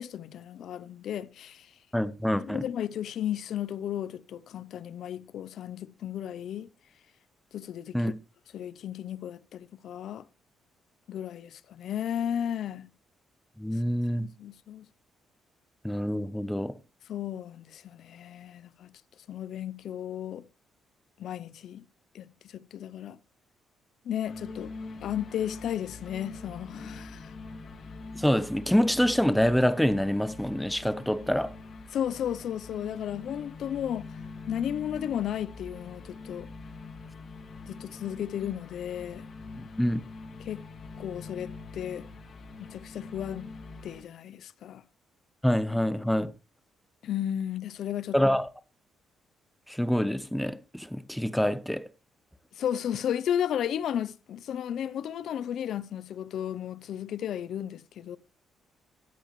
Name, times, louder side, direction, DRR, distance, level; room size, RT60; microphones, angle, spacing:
voice 1, 0.0-1.7 2.4-6.7 7.5-8.0 8.5-10.2 11.1-12.9 14.2-14.9 17.1-18.9 19.3-20.4 21.2-21.8 22.1-22.3 22.5-23.2 24.0-24.7 25.0-27.3 31.9-34.2 34.5-36.5 37.6-39.3 40.4-40.6 41.0-42.1 42.6-43.5 43.8-44.8 47.0-48.2 52.6-58.2, left 10 dB, 70° left, 0.6 m, -34 dB
voice 2, 1.9-2.6 7.9-8.1 13.6-14.3 15.8-16.8 28.1-31.5 39.6-40.0 45.4-46.3 48.1-48.5 49.7-51.9, equal, 5° left, 0.8 m, -26 dB
sound 1, 24.2-44.0, left 3 dB, 50° left, 1.8 m, -44 dB
13.5 x 7.9 x 3.1 m
cardioid pair, 90°, 0 cm